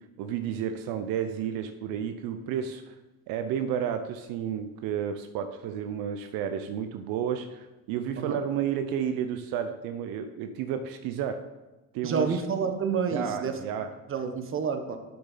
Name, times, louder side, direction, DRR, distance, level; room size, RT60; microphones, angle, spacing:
voice 1, 0.2-2.9 3.3-11.4 11.9-12.4 13.1-13.9, right 8 dB, 75° right, 8 dB, 0.8 m, -31 dB
voice 2, 12.0-13.6 14.1-15.0, right 6 dB, 35° right, 7 dB, 1.2 m, -29 dB
7.9 x 6.7 x 5.7 m, 1.1 s
supercardioid pair, 105°, 35 cm